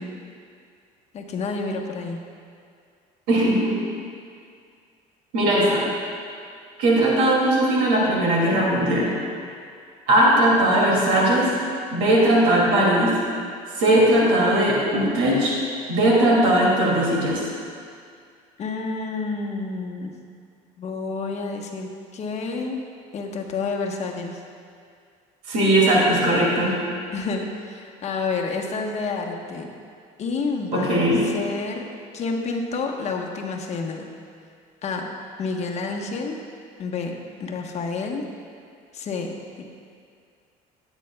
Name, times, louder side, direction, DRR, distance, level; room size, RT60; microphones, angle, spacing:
voice 1, 1.1-2.2 18.6-20.1 20.8-22.8 23.1-24.3 27.1-29.7 30.2-31.8 32.1-34.1 34.8-35.1 35.4-36.4 36.8-38.2 38.9-39.6, left 4 dB, 45° left, 1 dB, 1.1 m, -29 dB
voice 2, 3.3-3.8 5.3-5.9 6.8-9.1 10.1-11.5 11.9-13.1 13.8-15.6 15.9-17.4 25.5-26.7 30.7-31.2, right 1 dB, 90° right, -3 dB, 2.5 m, -19 dB
14.0 x 9.0 x 2.3 m, 2.2 s
cardioid pair, 105°, 16 cm